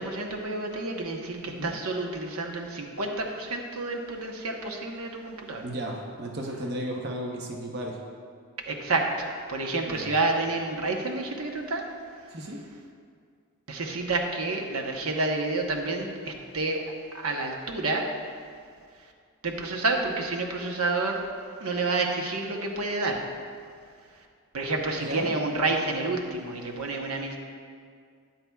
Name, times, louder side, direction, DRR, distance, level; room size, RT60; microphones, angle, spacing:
voice 1, 0.0-5.6 8.7-11.9 13.7-16.8 17.1-18.0 19.4-21.2 21.6-23.2 24.5-27.4, right 3 dB, 80° right, 2 dB, 0.9 m, -29 dB
voice 2, 5.6-8.0 9.8-10.1 12.3-12.6 24.9-25.3, right 1 dB, 50° right, 0 dB, 0.8 m, -34 dB
13.0 x 9.5 x 2.3 m, 2.1 s
head